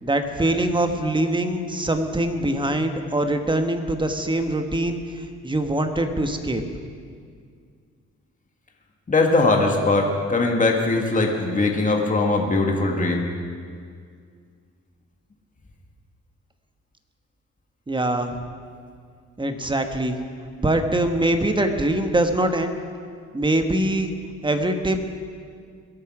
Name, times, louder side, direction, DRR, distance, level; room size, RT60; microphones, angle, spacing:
voice 1, 0.0-6.6 17.9-18.4 19.4-20.2 20.6-22.7 23.3-24.1 24.4-25.0, right 1 dB, 15° right, 6 dB, 1.3 m, -23 dB
voice 2, 9.1-13.3, left 3 dB, 25° left, 1 dB, 1.8 m, -20 dB
22.0 x 8.6 x 4.9 m, 2.1 s
cardioid pair, 90°, 30 cm